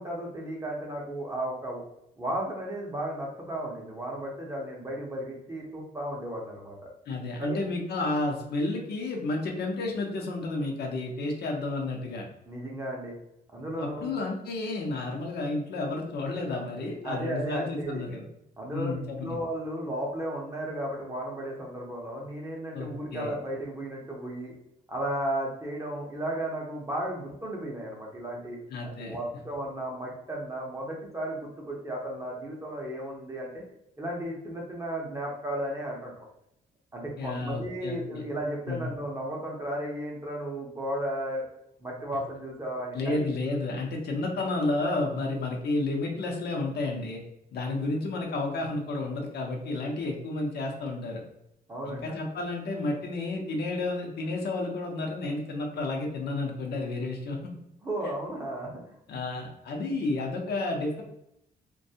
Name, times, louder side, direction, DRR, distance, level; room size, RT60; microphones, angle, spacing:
voice 1, 0.0-1.8 2.2-6.9 7.4-7.6 12.5-13.2 13.5-14.1 17.0-18.0 18.6-24.5 24.9-28.6 29.0-33.6 34.0-36.3 36.9-41.5 41.8-43.3 51.7-52.1 57.8-59.0, right 1 dB, 15° right, -2 dB, 0.6 m, -34 dB
voice 2, 7.1-12.3 13.8-18.3 18.7-19.4 22.7-23.3 28.7-29.2 37.2-38.2 38.7-38.9 42.9-47.2 47.5-51.2 51.9-57.5 59.1-61.0, left 2 dB, 70° left, 1 dB, 0.7 m, -31 dB
2.6 x 2.2 x 2.7 m, 0.78 s
wide cardioid pair, 155°, 17 cm